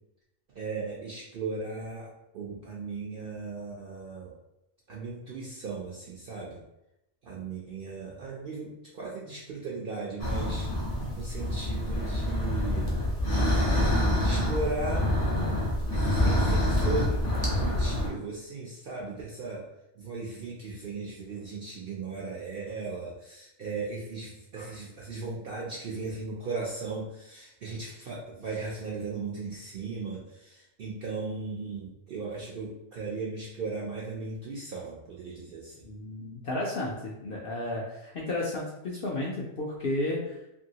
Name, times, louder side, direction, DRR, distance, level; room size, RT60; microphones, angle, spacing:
voice 1, 0.5-2.1 2.3-4.4 4.9-6.6 7.2-10.7 11.2-12.9 13.8-15.1 15.9-19.7 20.0-35.8, right 3 dB, 65° right, -4 dB, 0.5 m, -37 dB
sound 1, 10.2-18.1, left 1 dB, 20° left, 0.6 m, -26 dB
voice 2, 35.8-40.4, left 2 dB, 65° left, -4 dB, 0.5 m, -33 dB
2.9 x 2.6 x 2.7 m, 0.89 s
omnidirectional pair, 1.4 m